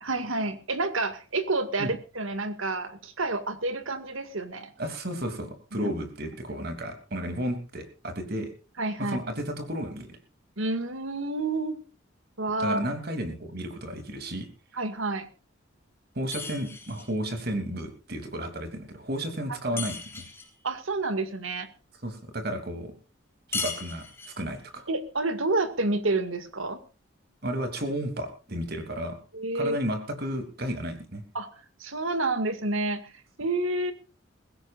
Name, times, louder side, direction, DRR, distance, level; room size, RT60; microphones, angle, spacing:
voice 1, 0.0-4.7 5.7-5.9 8.8-9.2 10.6-11.8 12.4-12.9 14.7-15.3 19.7-19.8 20.6-21.7 24.9-26.8 29.3-29.8 31.3-31.5 31.8-33.1 33.4-33.9, right 2 dB, 90° right, 10 dB, 2.2 m, -29 dB
voice 2, 4.8-8.5 9.0-10.2 12.6-14.5 16.1-20.2 22.0-22.9 23.5-24.8 27.4-29.2 29.5-31.2, equal, 50° right, 6 dB, 3.0 m, -33 dB
sound 1, 16.3-17.2 19.8-20.5 23.5-24.5, left 4 dB, 10° left, 3.6 m, -36 dB
21.5 x 16.0 x 2.5 m, 0.34 s
head